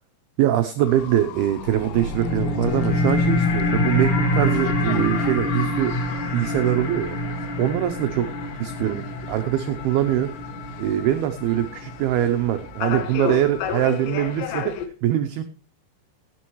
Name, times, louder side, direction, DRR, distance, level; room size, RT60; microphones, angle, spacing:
voice 1, 0.4-6.0 6.3-7.2 7.6-8.3 8.6-10.3 10.8-14.7 15.0-15.4, right 12 dB, 90° right, 8 dB, 2.2 m, -23 dB
sound 1, 0.8-14.9, left 8 dB, 75° left, 3.2 m, -35 dB
sound 2, 1.6-12.6, left 1 dB, 50° left, 1.7 m, -26 dB
17.0 x 9.3 x 3.1 m, 0.39 s
omnidirectional pair, 5.5 m